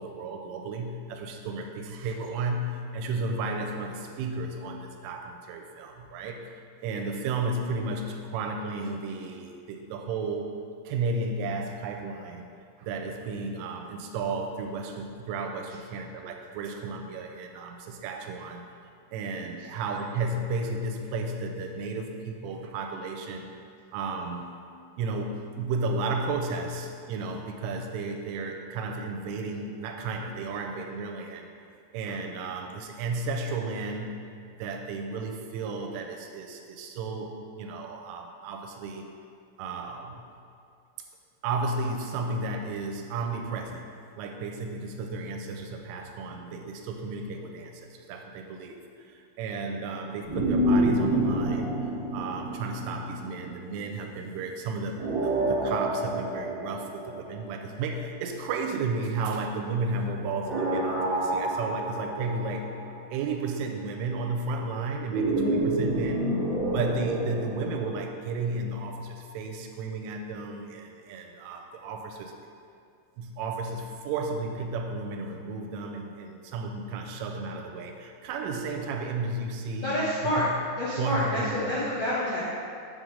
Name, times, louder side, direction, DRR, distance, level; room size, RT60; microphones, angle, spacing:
voice 1, 0.0-6.4 6.8-10.5 10.9-12.4 12.8-18.7 19.1-23.5 23.9-24.5 25.0-31.5 31.9-34.2 34.6-39.1 39.6-40.2 41.4-43.9 44.2-48.8 49.1-51.8 52.1-62.7 63.1-66.3 66.7-72.3 73.2-79.9 80.4-80.5 81.0-81.7, right 3 dB, 85° right, 3 dB, 3.1 m, -33 dB
sound 1, 50.3-53.6 55.0-57.8 60.4-63.1 65.1-67.9, right 1 dB, 65° right, 1.1 m, -28 dB
voice 2, 79.8-80.5 80.7-82.5, left 1 dB, 90° left, -9 dB, 1.8 m, -28 dB
7.6 x 6.4 x 3.8 m, 2.3 s
omnidirectional pair, 5.7 m